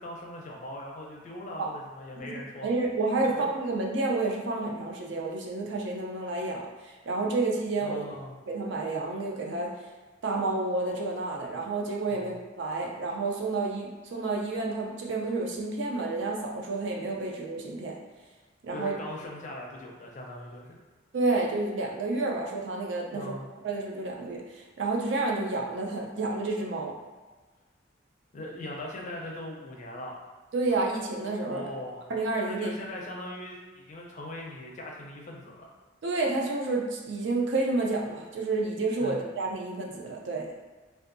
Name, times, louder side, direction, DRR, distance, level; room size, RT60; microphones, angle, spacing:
voice 1, 0.0-2.7 7.8-8.4 12.1-12.3 18.7-20.8 23.1-23.5 28.3-30.2 31.5-32.0 32.5-35.7 39.0-39.2, left 1 dB, 40° left, -1 dB, 0.4 m, -40 dB
voice 2, 2.2-8.0 8.5-9.7 10.2-18.0 18.6-18.9 21.1-23.4 23.6-27.0 30.5-31.7 32.1-32.7 36.0-40.5, right 3 dB, 60° right, 0 dB, 0.4 m, -30 dB
2.6 x 2.2 x 2.5 m, 1.3 s
head